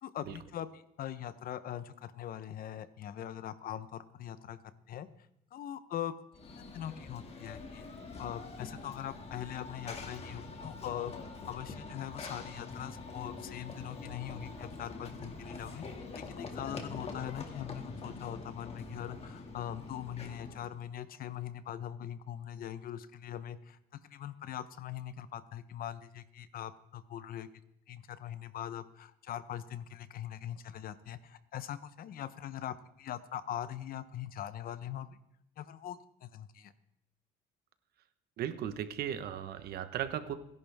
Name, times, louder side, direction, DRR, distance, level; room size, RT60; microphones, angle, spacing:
voice 1, 0.0-4.6 4.9-5.1 5.5-6.2 6.7-7.8 8.2-15.8 16.1-23.8 24.1-27.5 27.9-35.2 35.6-36.7, left 10 dB, 60° left, 14 dB, 1.0 m, -42 dB
Run / Train, 6.3-20.8, left 3 dB, 35° left, 2.4 m, -45 dB
voice 2, 38.4-40.3, right 10 dB, 70° right, 11 dB, 1.3 m, -36 dB
29.5 x 11.0 x 3.6 m, 0.77 s
cardioid pair, 110°, 17 cm